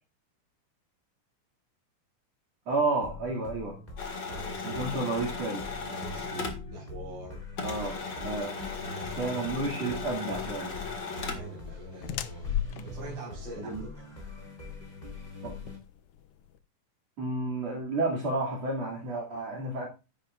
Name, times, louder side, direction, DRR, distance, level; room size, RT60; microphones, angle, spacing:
voice 1, 2.7-3.8 4.6-5.7 7.6-8.5 9.2-10.7 13.6-13.9 15.4-15.5 17.2-19.9, right 2 dB, 55° right, 3.5 m, -31 dB
sound 1, 3.0-15.8, left 3 dB, 15° left, 3.3 m, -44 dB
sound 2, 4.0-7.3 7.6-11.6, left 4 dB, 40° left, 2.3 m, -37 dB
voice 2, 4.3-4.9 5.9-7.8 8.2-8.4 8.7-9.4 11.1-12.5 12.8-14.0, right 1 dB, 35° right, 5.4 m, -43 dB
sound 3, 10.5-16.6, left 11 dB, 90° left, 1.2 m, -38 dB
11.0 x 9.9 x 2.5 m
omnidirectional pair, 3.7 m